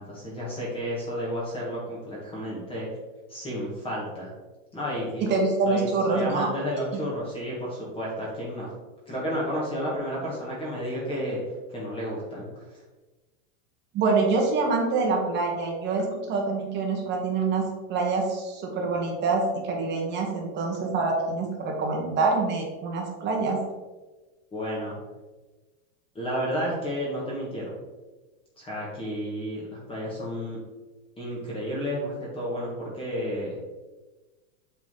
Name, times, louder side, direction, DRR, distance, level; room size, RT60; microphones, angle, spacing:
voice 1, 0.0-2.9 3.3-4.3 4.7-5.3 5.7-8.7 9.1-11.4 11.7-12.8 24.5-25.0 26.1-27.8 28.6-30.6 31.2-33.6, equal, 15° left, -5 dB, 1.5 m, -31 dB
voice 2, 5.2-6.5 6.9-7.0 13.9-23.6, right 3 dB, 25° right, 1 dB, 1.1 m, -26 dB
8.1 x 3.8 x 3.7 m, 1.2 s
supercardioid pair, 160°, 41 cm